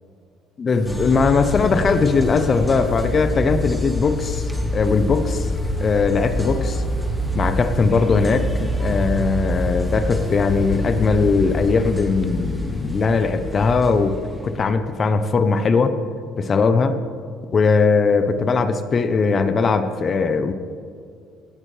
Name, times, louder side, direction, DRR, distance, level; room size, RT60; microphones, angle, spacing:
voice 1, 0.6-5.5 5.8-6.8 7.3-14.2 14.4-16.0 16.4-17.0 17.5-20.5, left 4 dB, 25° left, 10 dB, 0.6 m, -19 dB
sound 1, 0.9-14.7, left 1 dB, 5° left, 1.0 m, -26 dB
17.5 x 12.0 x 3.3 m, 2.3 s
cardioid pair, 175°, 0 cm